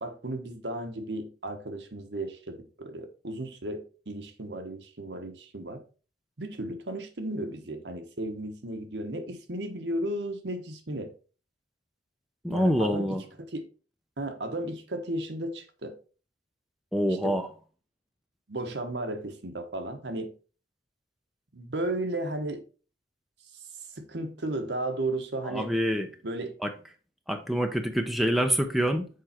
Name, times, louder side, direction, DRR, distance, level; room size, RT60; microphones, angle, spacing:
voice 1, 0.0-5.8 6.4-11.1 12.5-13.2 13.5-13.6 14.2-16.0 17.2-17.4 18.5-20.3 21.5-22.6 23.9-25.8 26.2-26.6, right 1 dB, 70° right, 6 dB, 1.2 m, -34 dB
voice 2, 12.4-13.2 16.9-17.5 25.4-26.1 26.6-26.7 27.3-29.1, equal, ahead, 5 dB, 0.7 m, -26 dB
6.8 x 4.7 x 4.4 m, 0.36 s
head